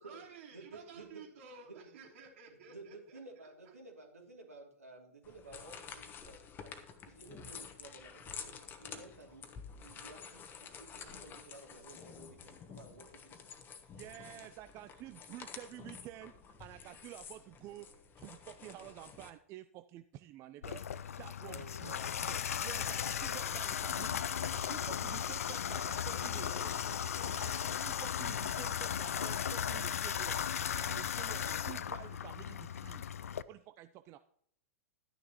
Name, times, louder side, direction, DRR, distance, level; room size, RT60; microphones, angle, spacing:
voice 1, 0.0-3.0, right 5 dB, 60° right, 1 dB, 3.0 m, -53 dB
voice 2, 0.5-1.2 1.6-1.9 2.7-6.7 7.0-8.5 8.8-9.5 9.7-10.4 10.8-13.4 21.4-23.0 26.1-27.5 31.7-31.9, right 2 dB, 85° right, 0 dB, 2.7 m, -54 dB
sound 1, 5.2-19.3, left 6 dB, 25° left, 1.2 m, -50 dB
voice 3, 13.9-16.3 16.6-17.9 18.2-20.8 21.2-26.5 27.3-30.4 30.7-33.0 33.5-34.2, right 13 dB, 35° right, 10 dB, 0.5 m, -50 dB
Water tap faucet / Bathtub (filling or washing), 20.6-33.4, left 8 dB, 75° left, 0.4 m, -36 dB
13.0 x 9.7 x 3.0 m, 0.66 s
figure-of-eight pair, 100°, 8 cm